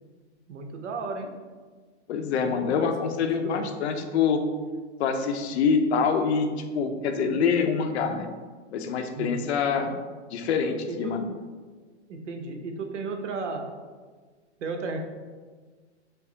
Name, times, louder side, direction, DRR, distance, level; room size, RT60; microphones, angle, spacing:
voice 1, 0.5-1.3 2.8-3.7 9.1-9.5 10.9-11.2 12.1-13.6 14.6-15.1, right 3 dB, 85° right, 4 dB, 0.8 m, -34 dB
voice 2, 2.1-4.4 5.0-8.3 8.7-9.9 10.3-11.2, left 6 dB, 65° left, 6 dB, 0.6 m, -25 dB
5.7 x 2.0 x 3.8 m, 1.5 s
hypercardioid pair, 145°, 35 cm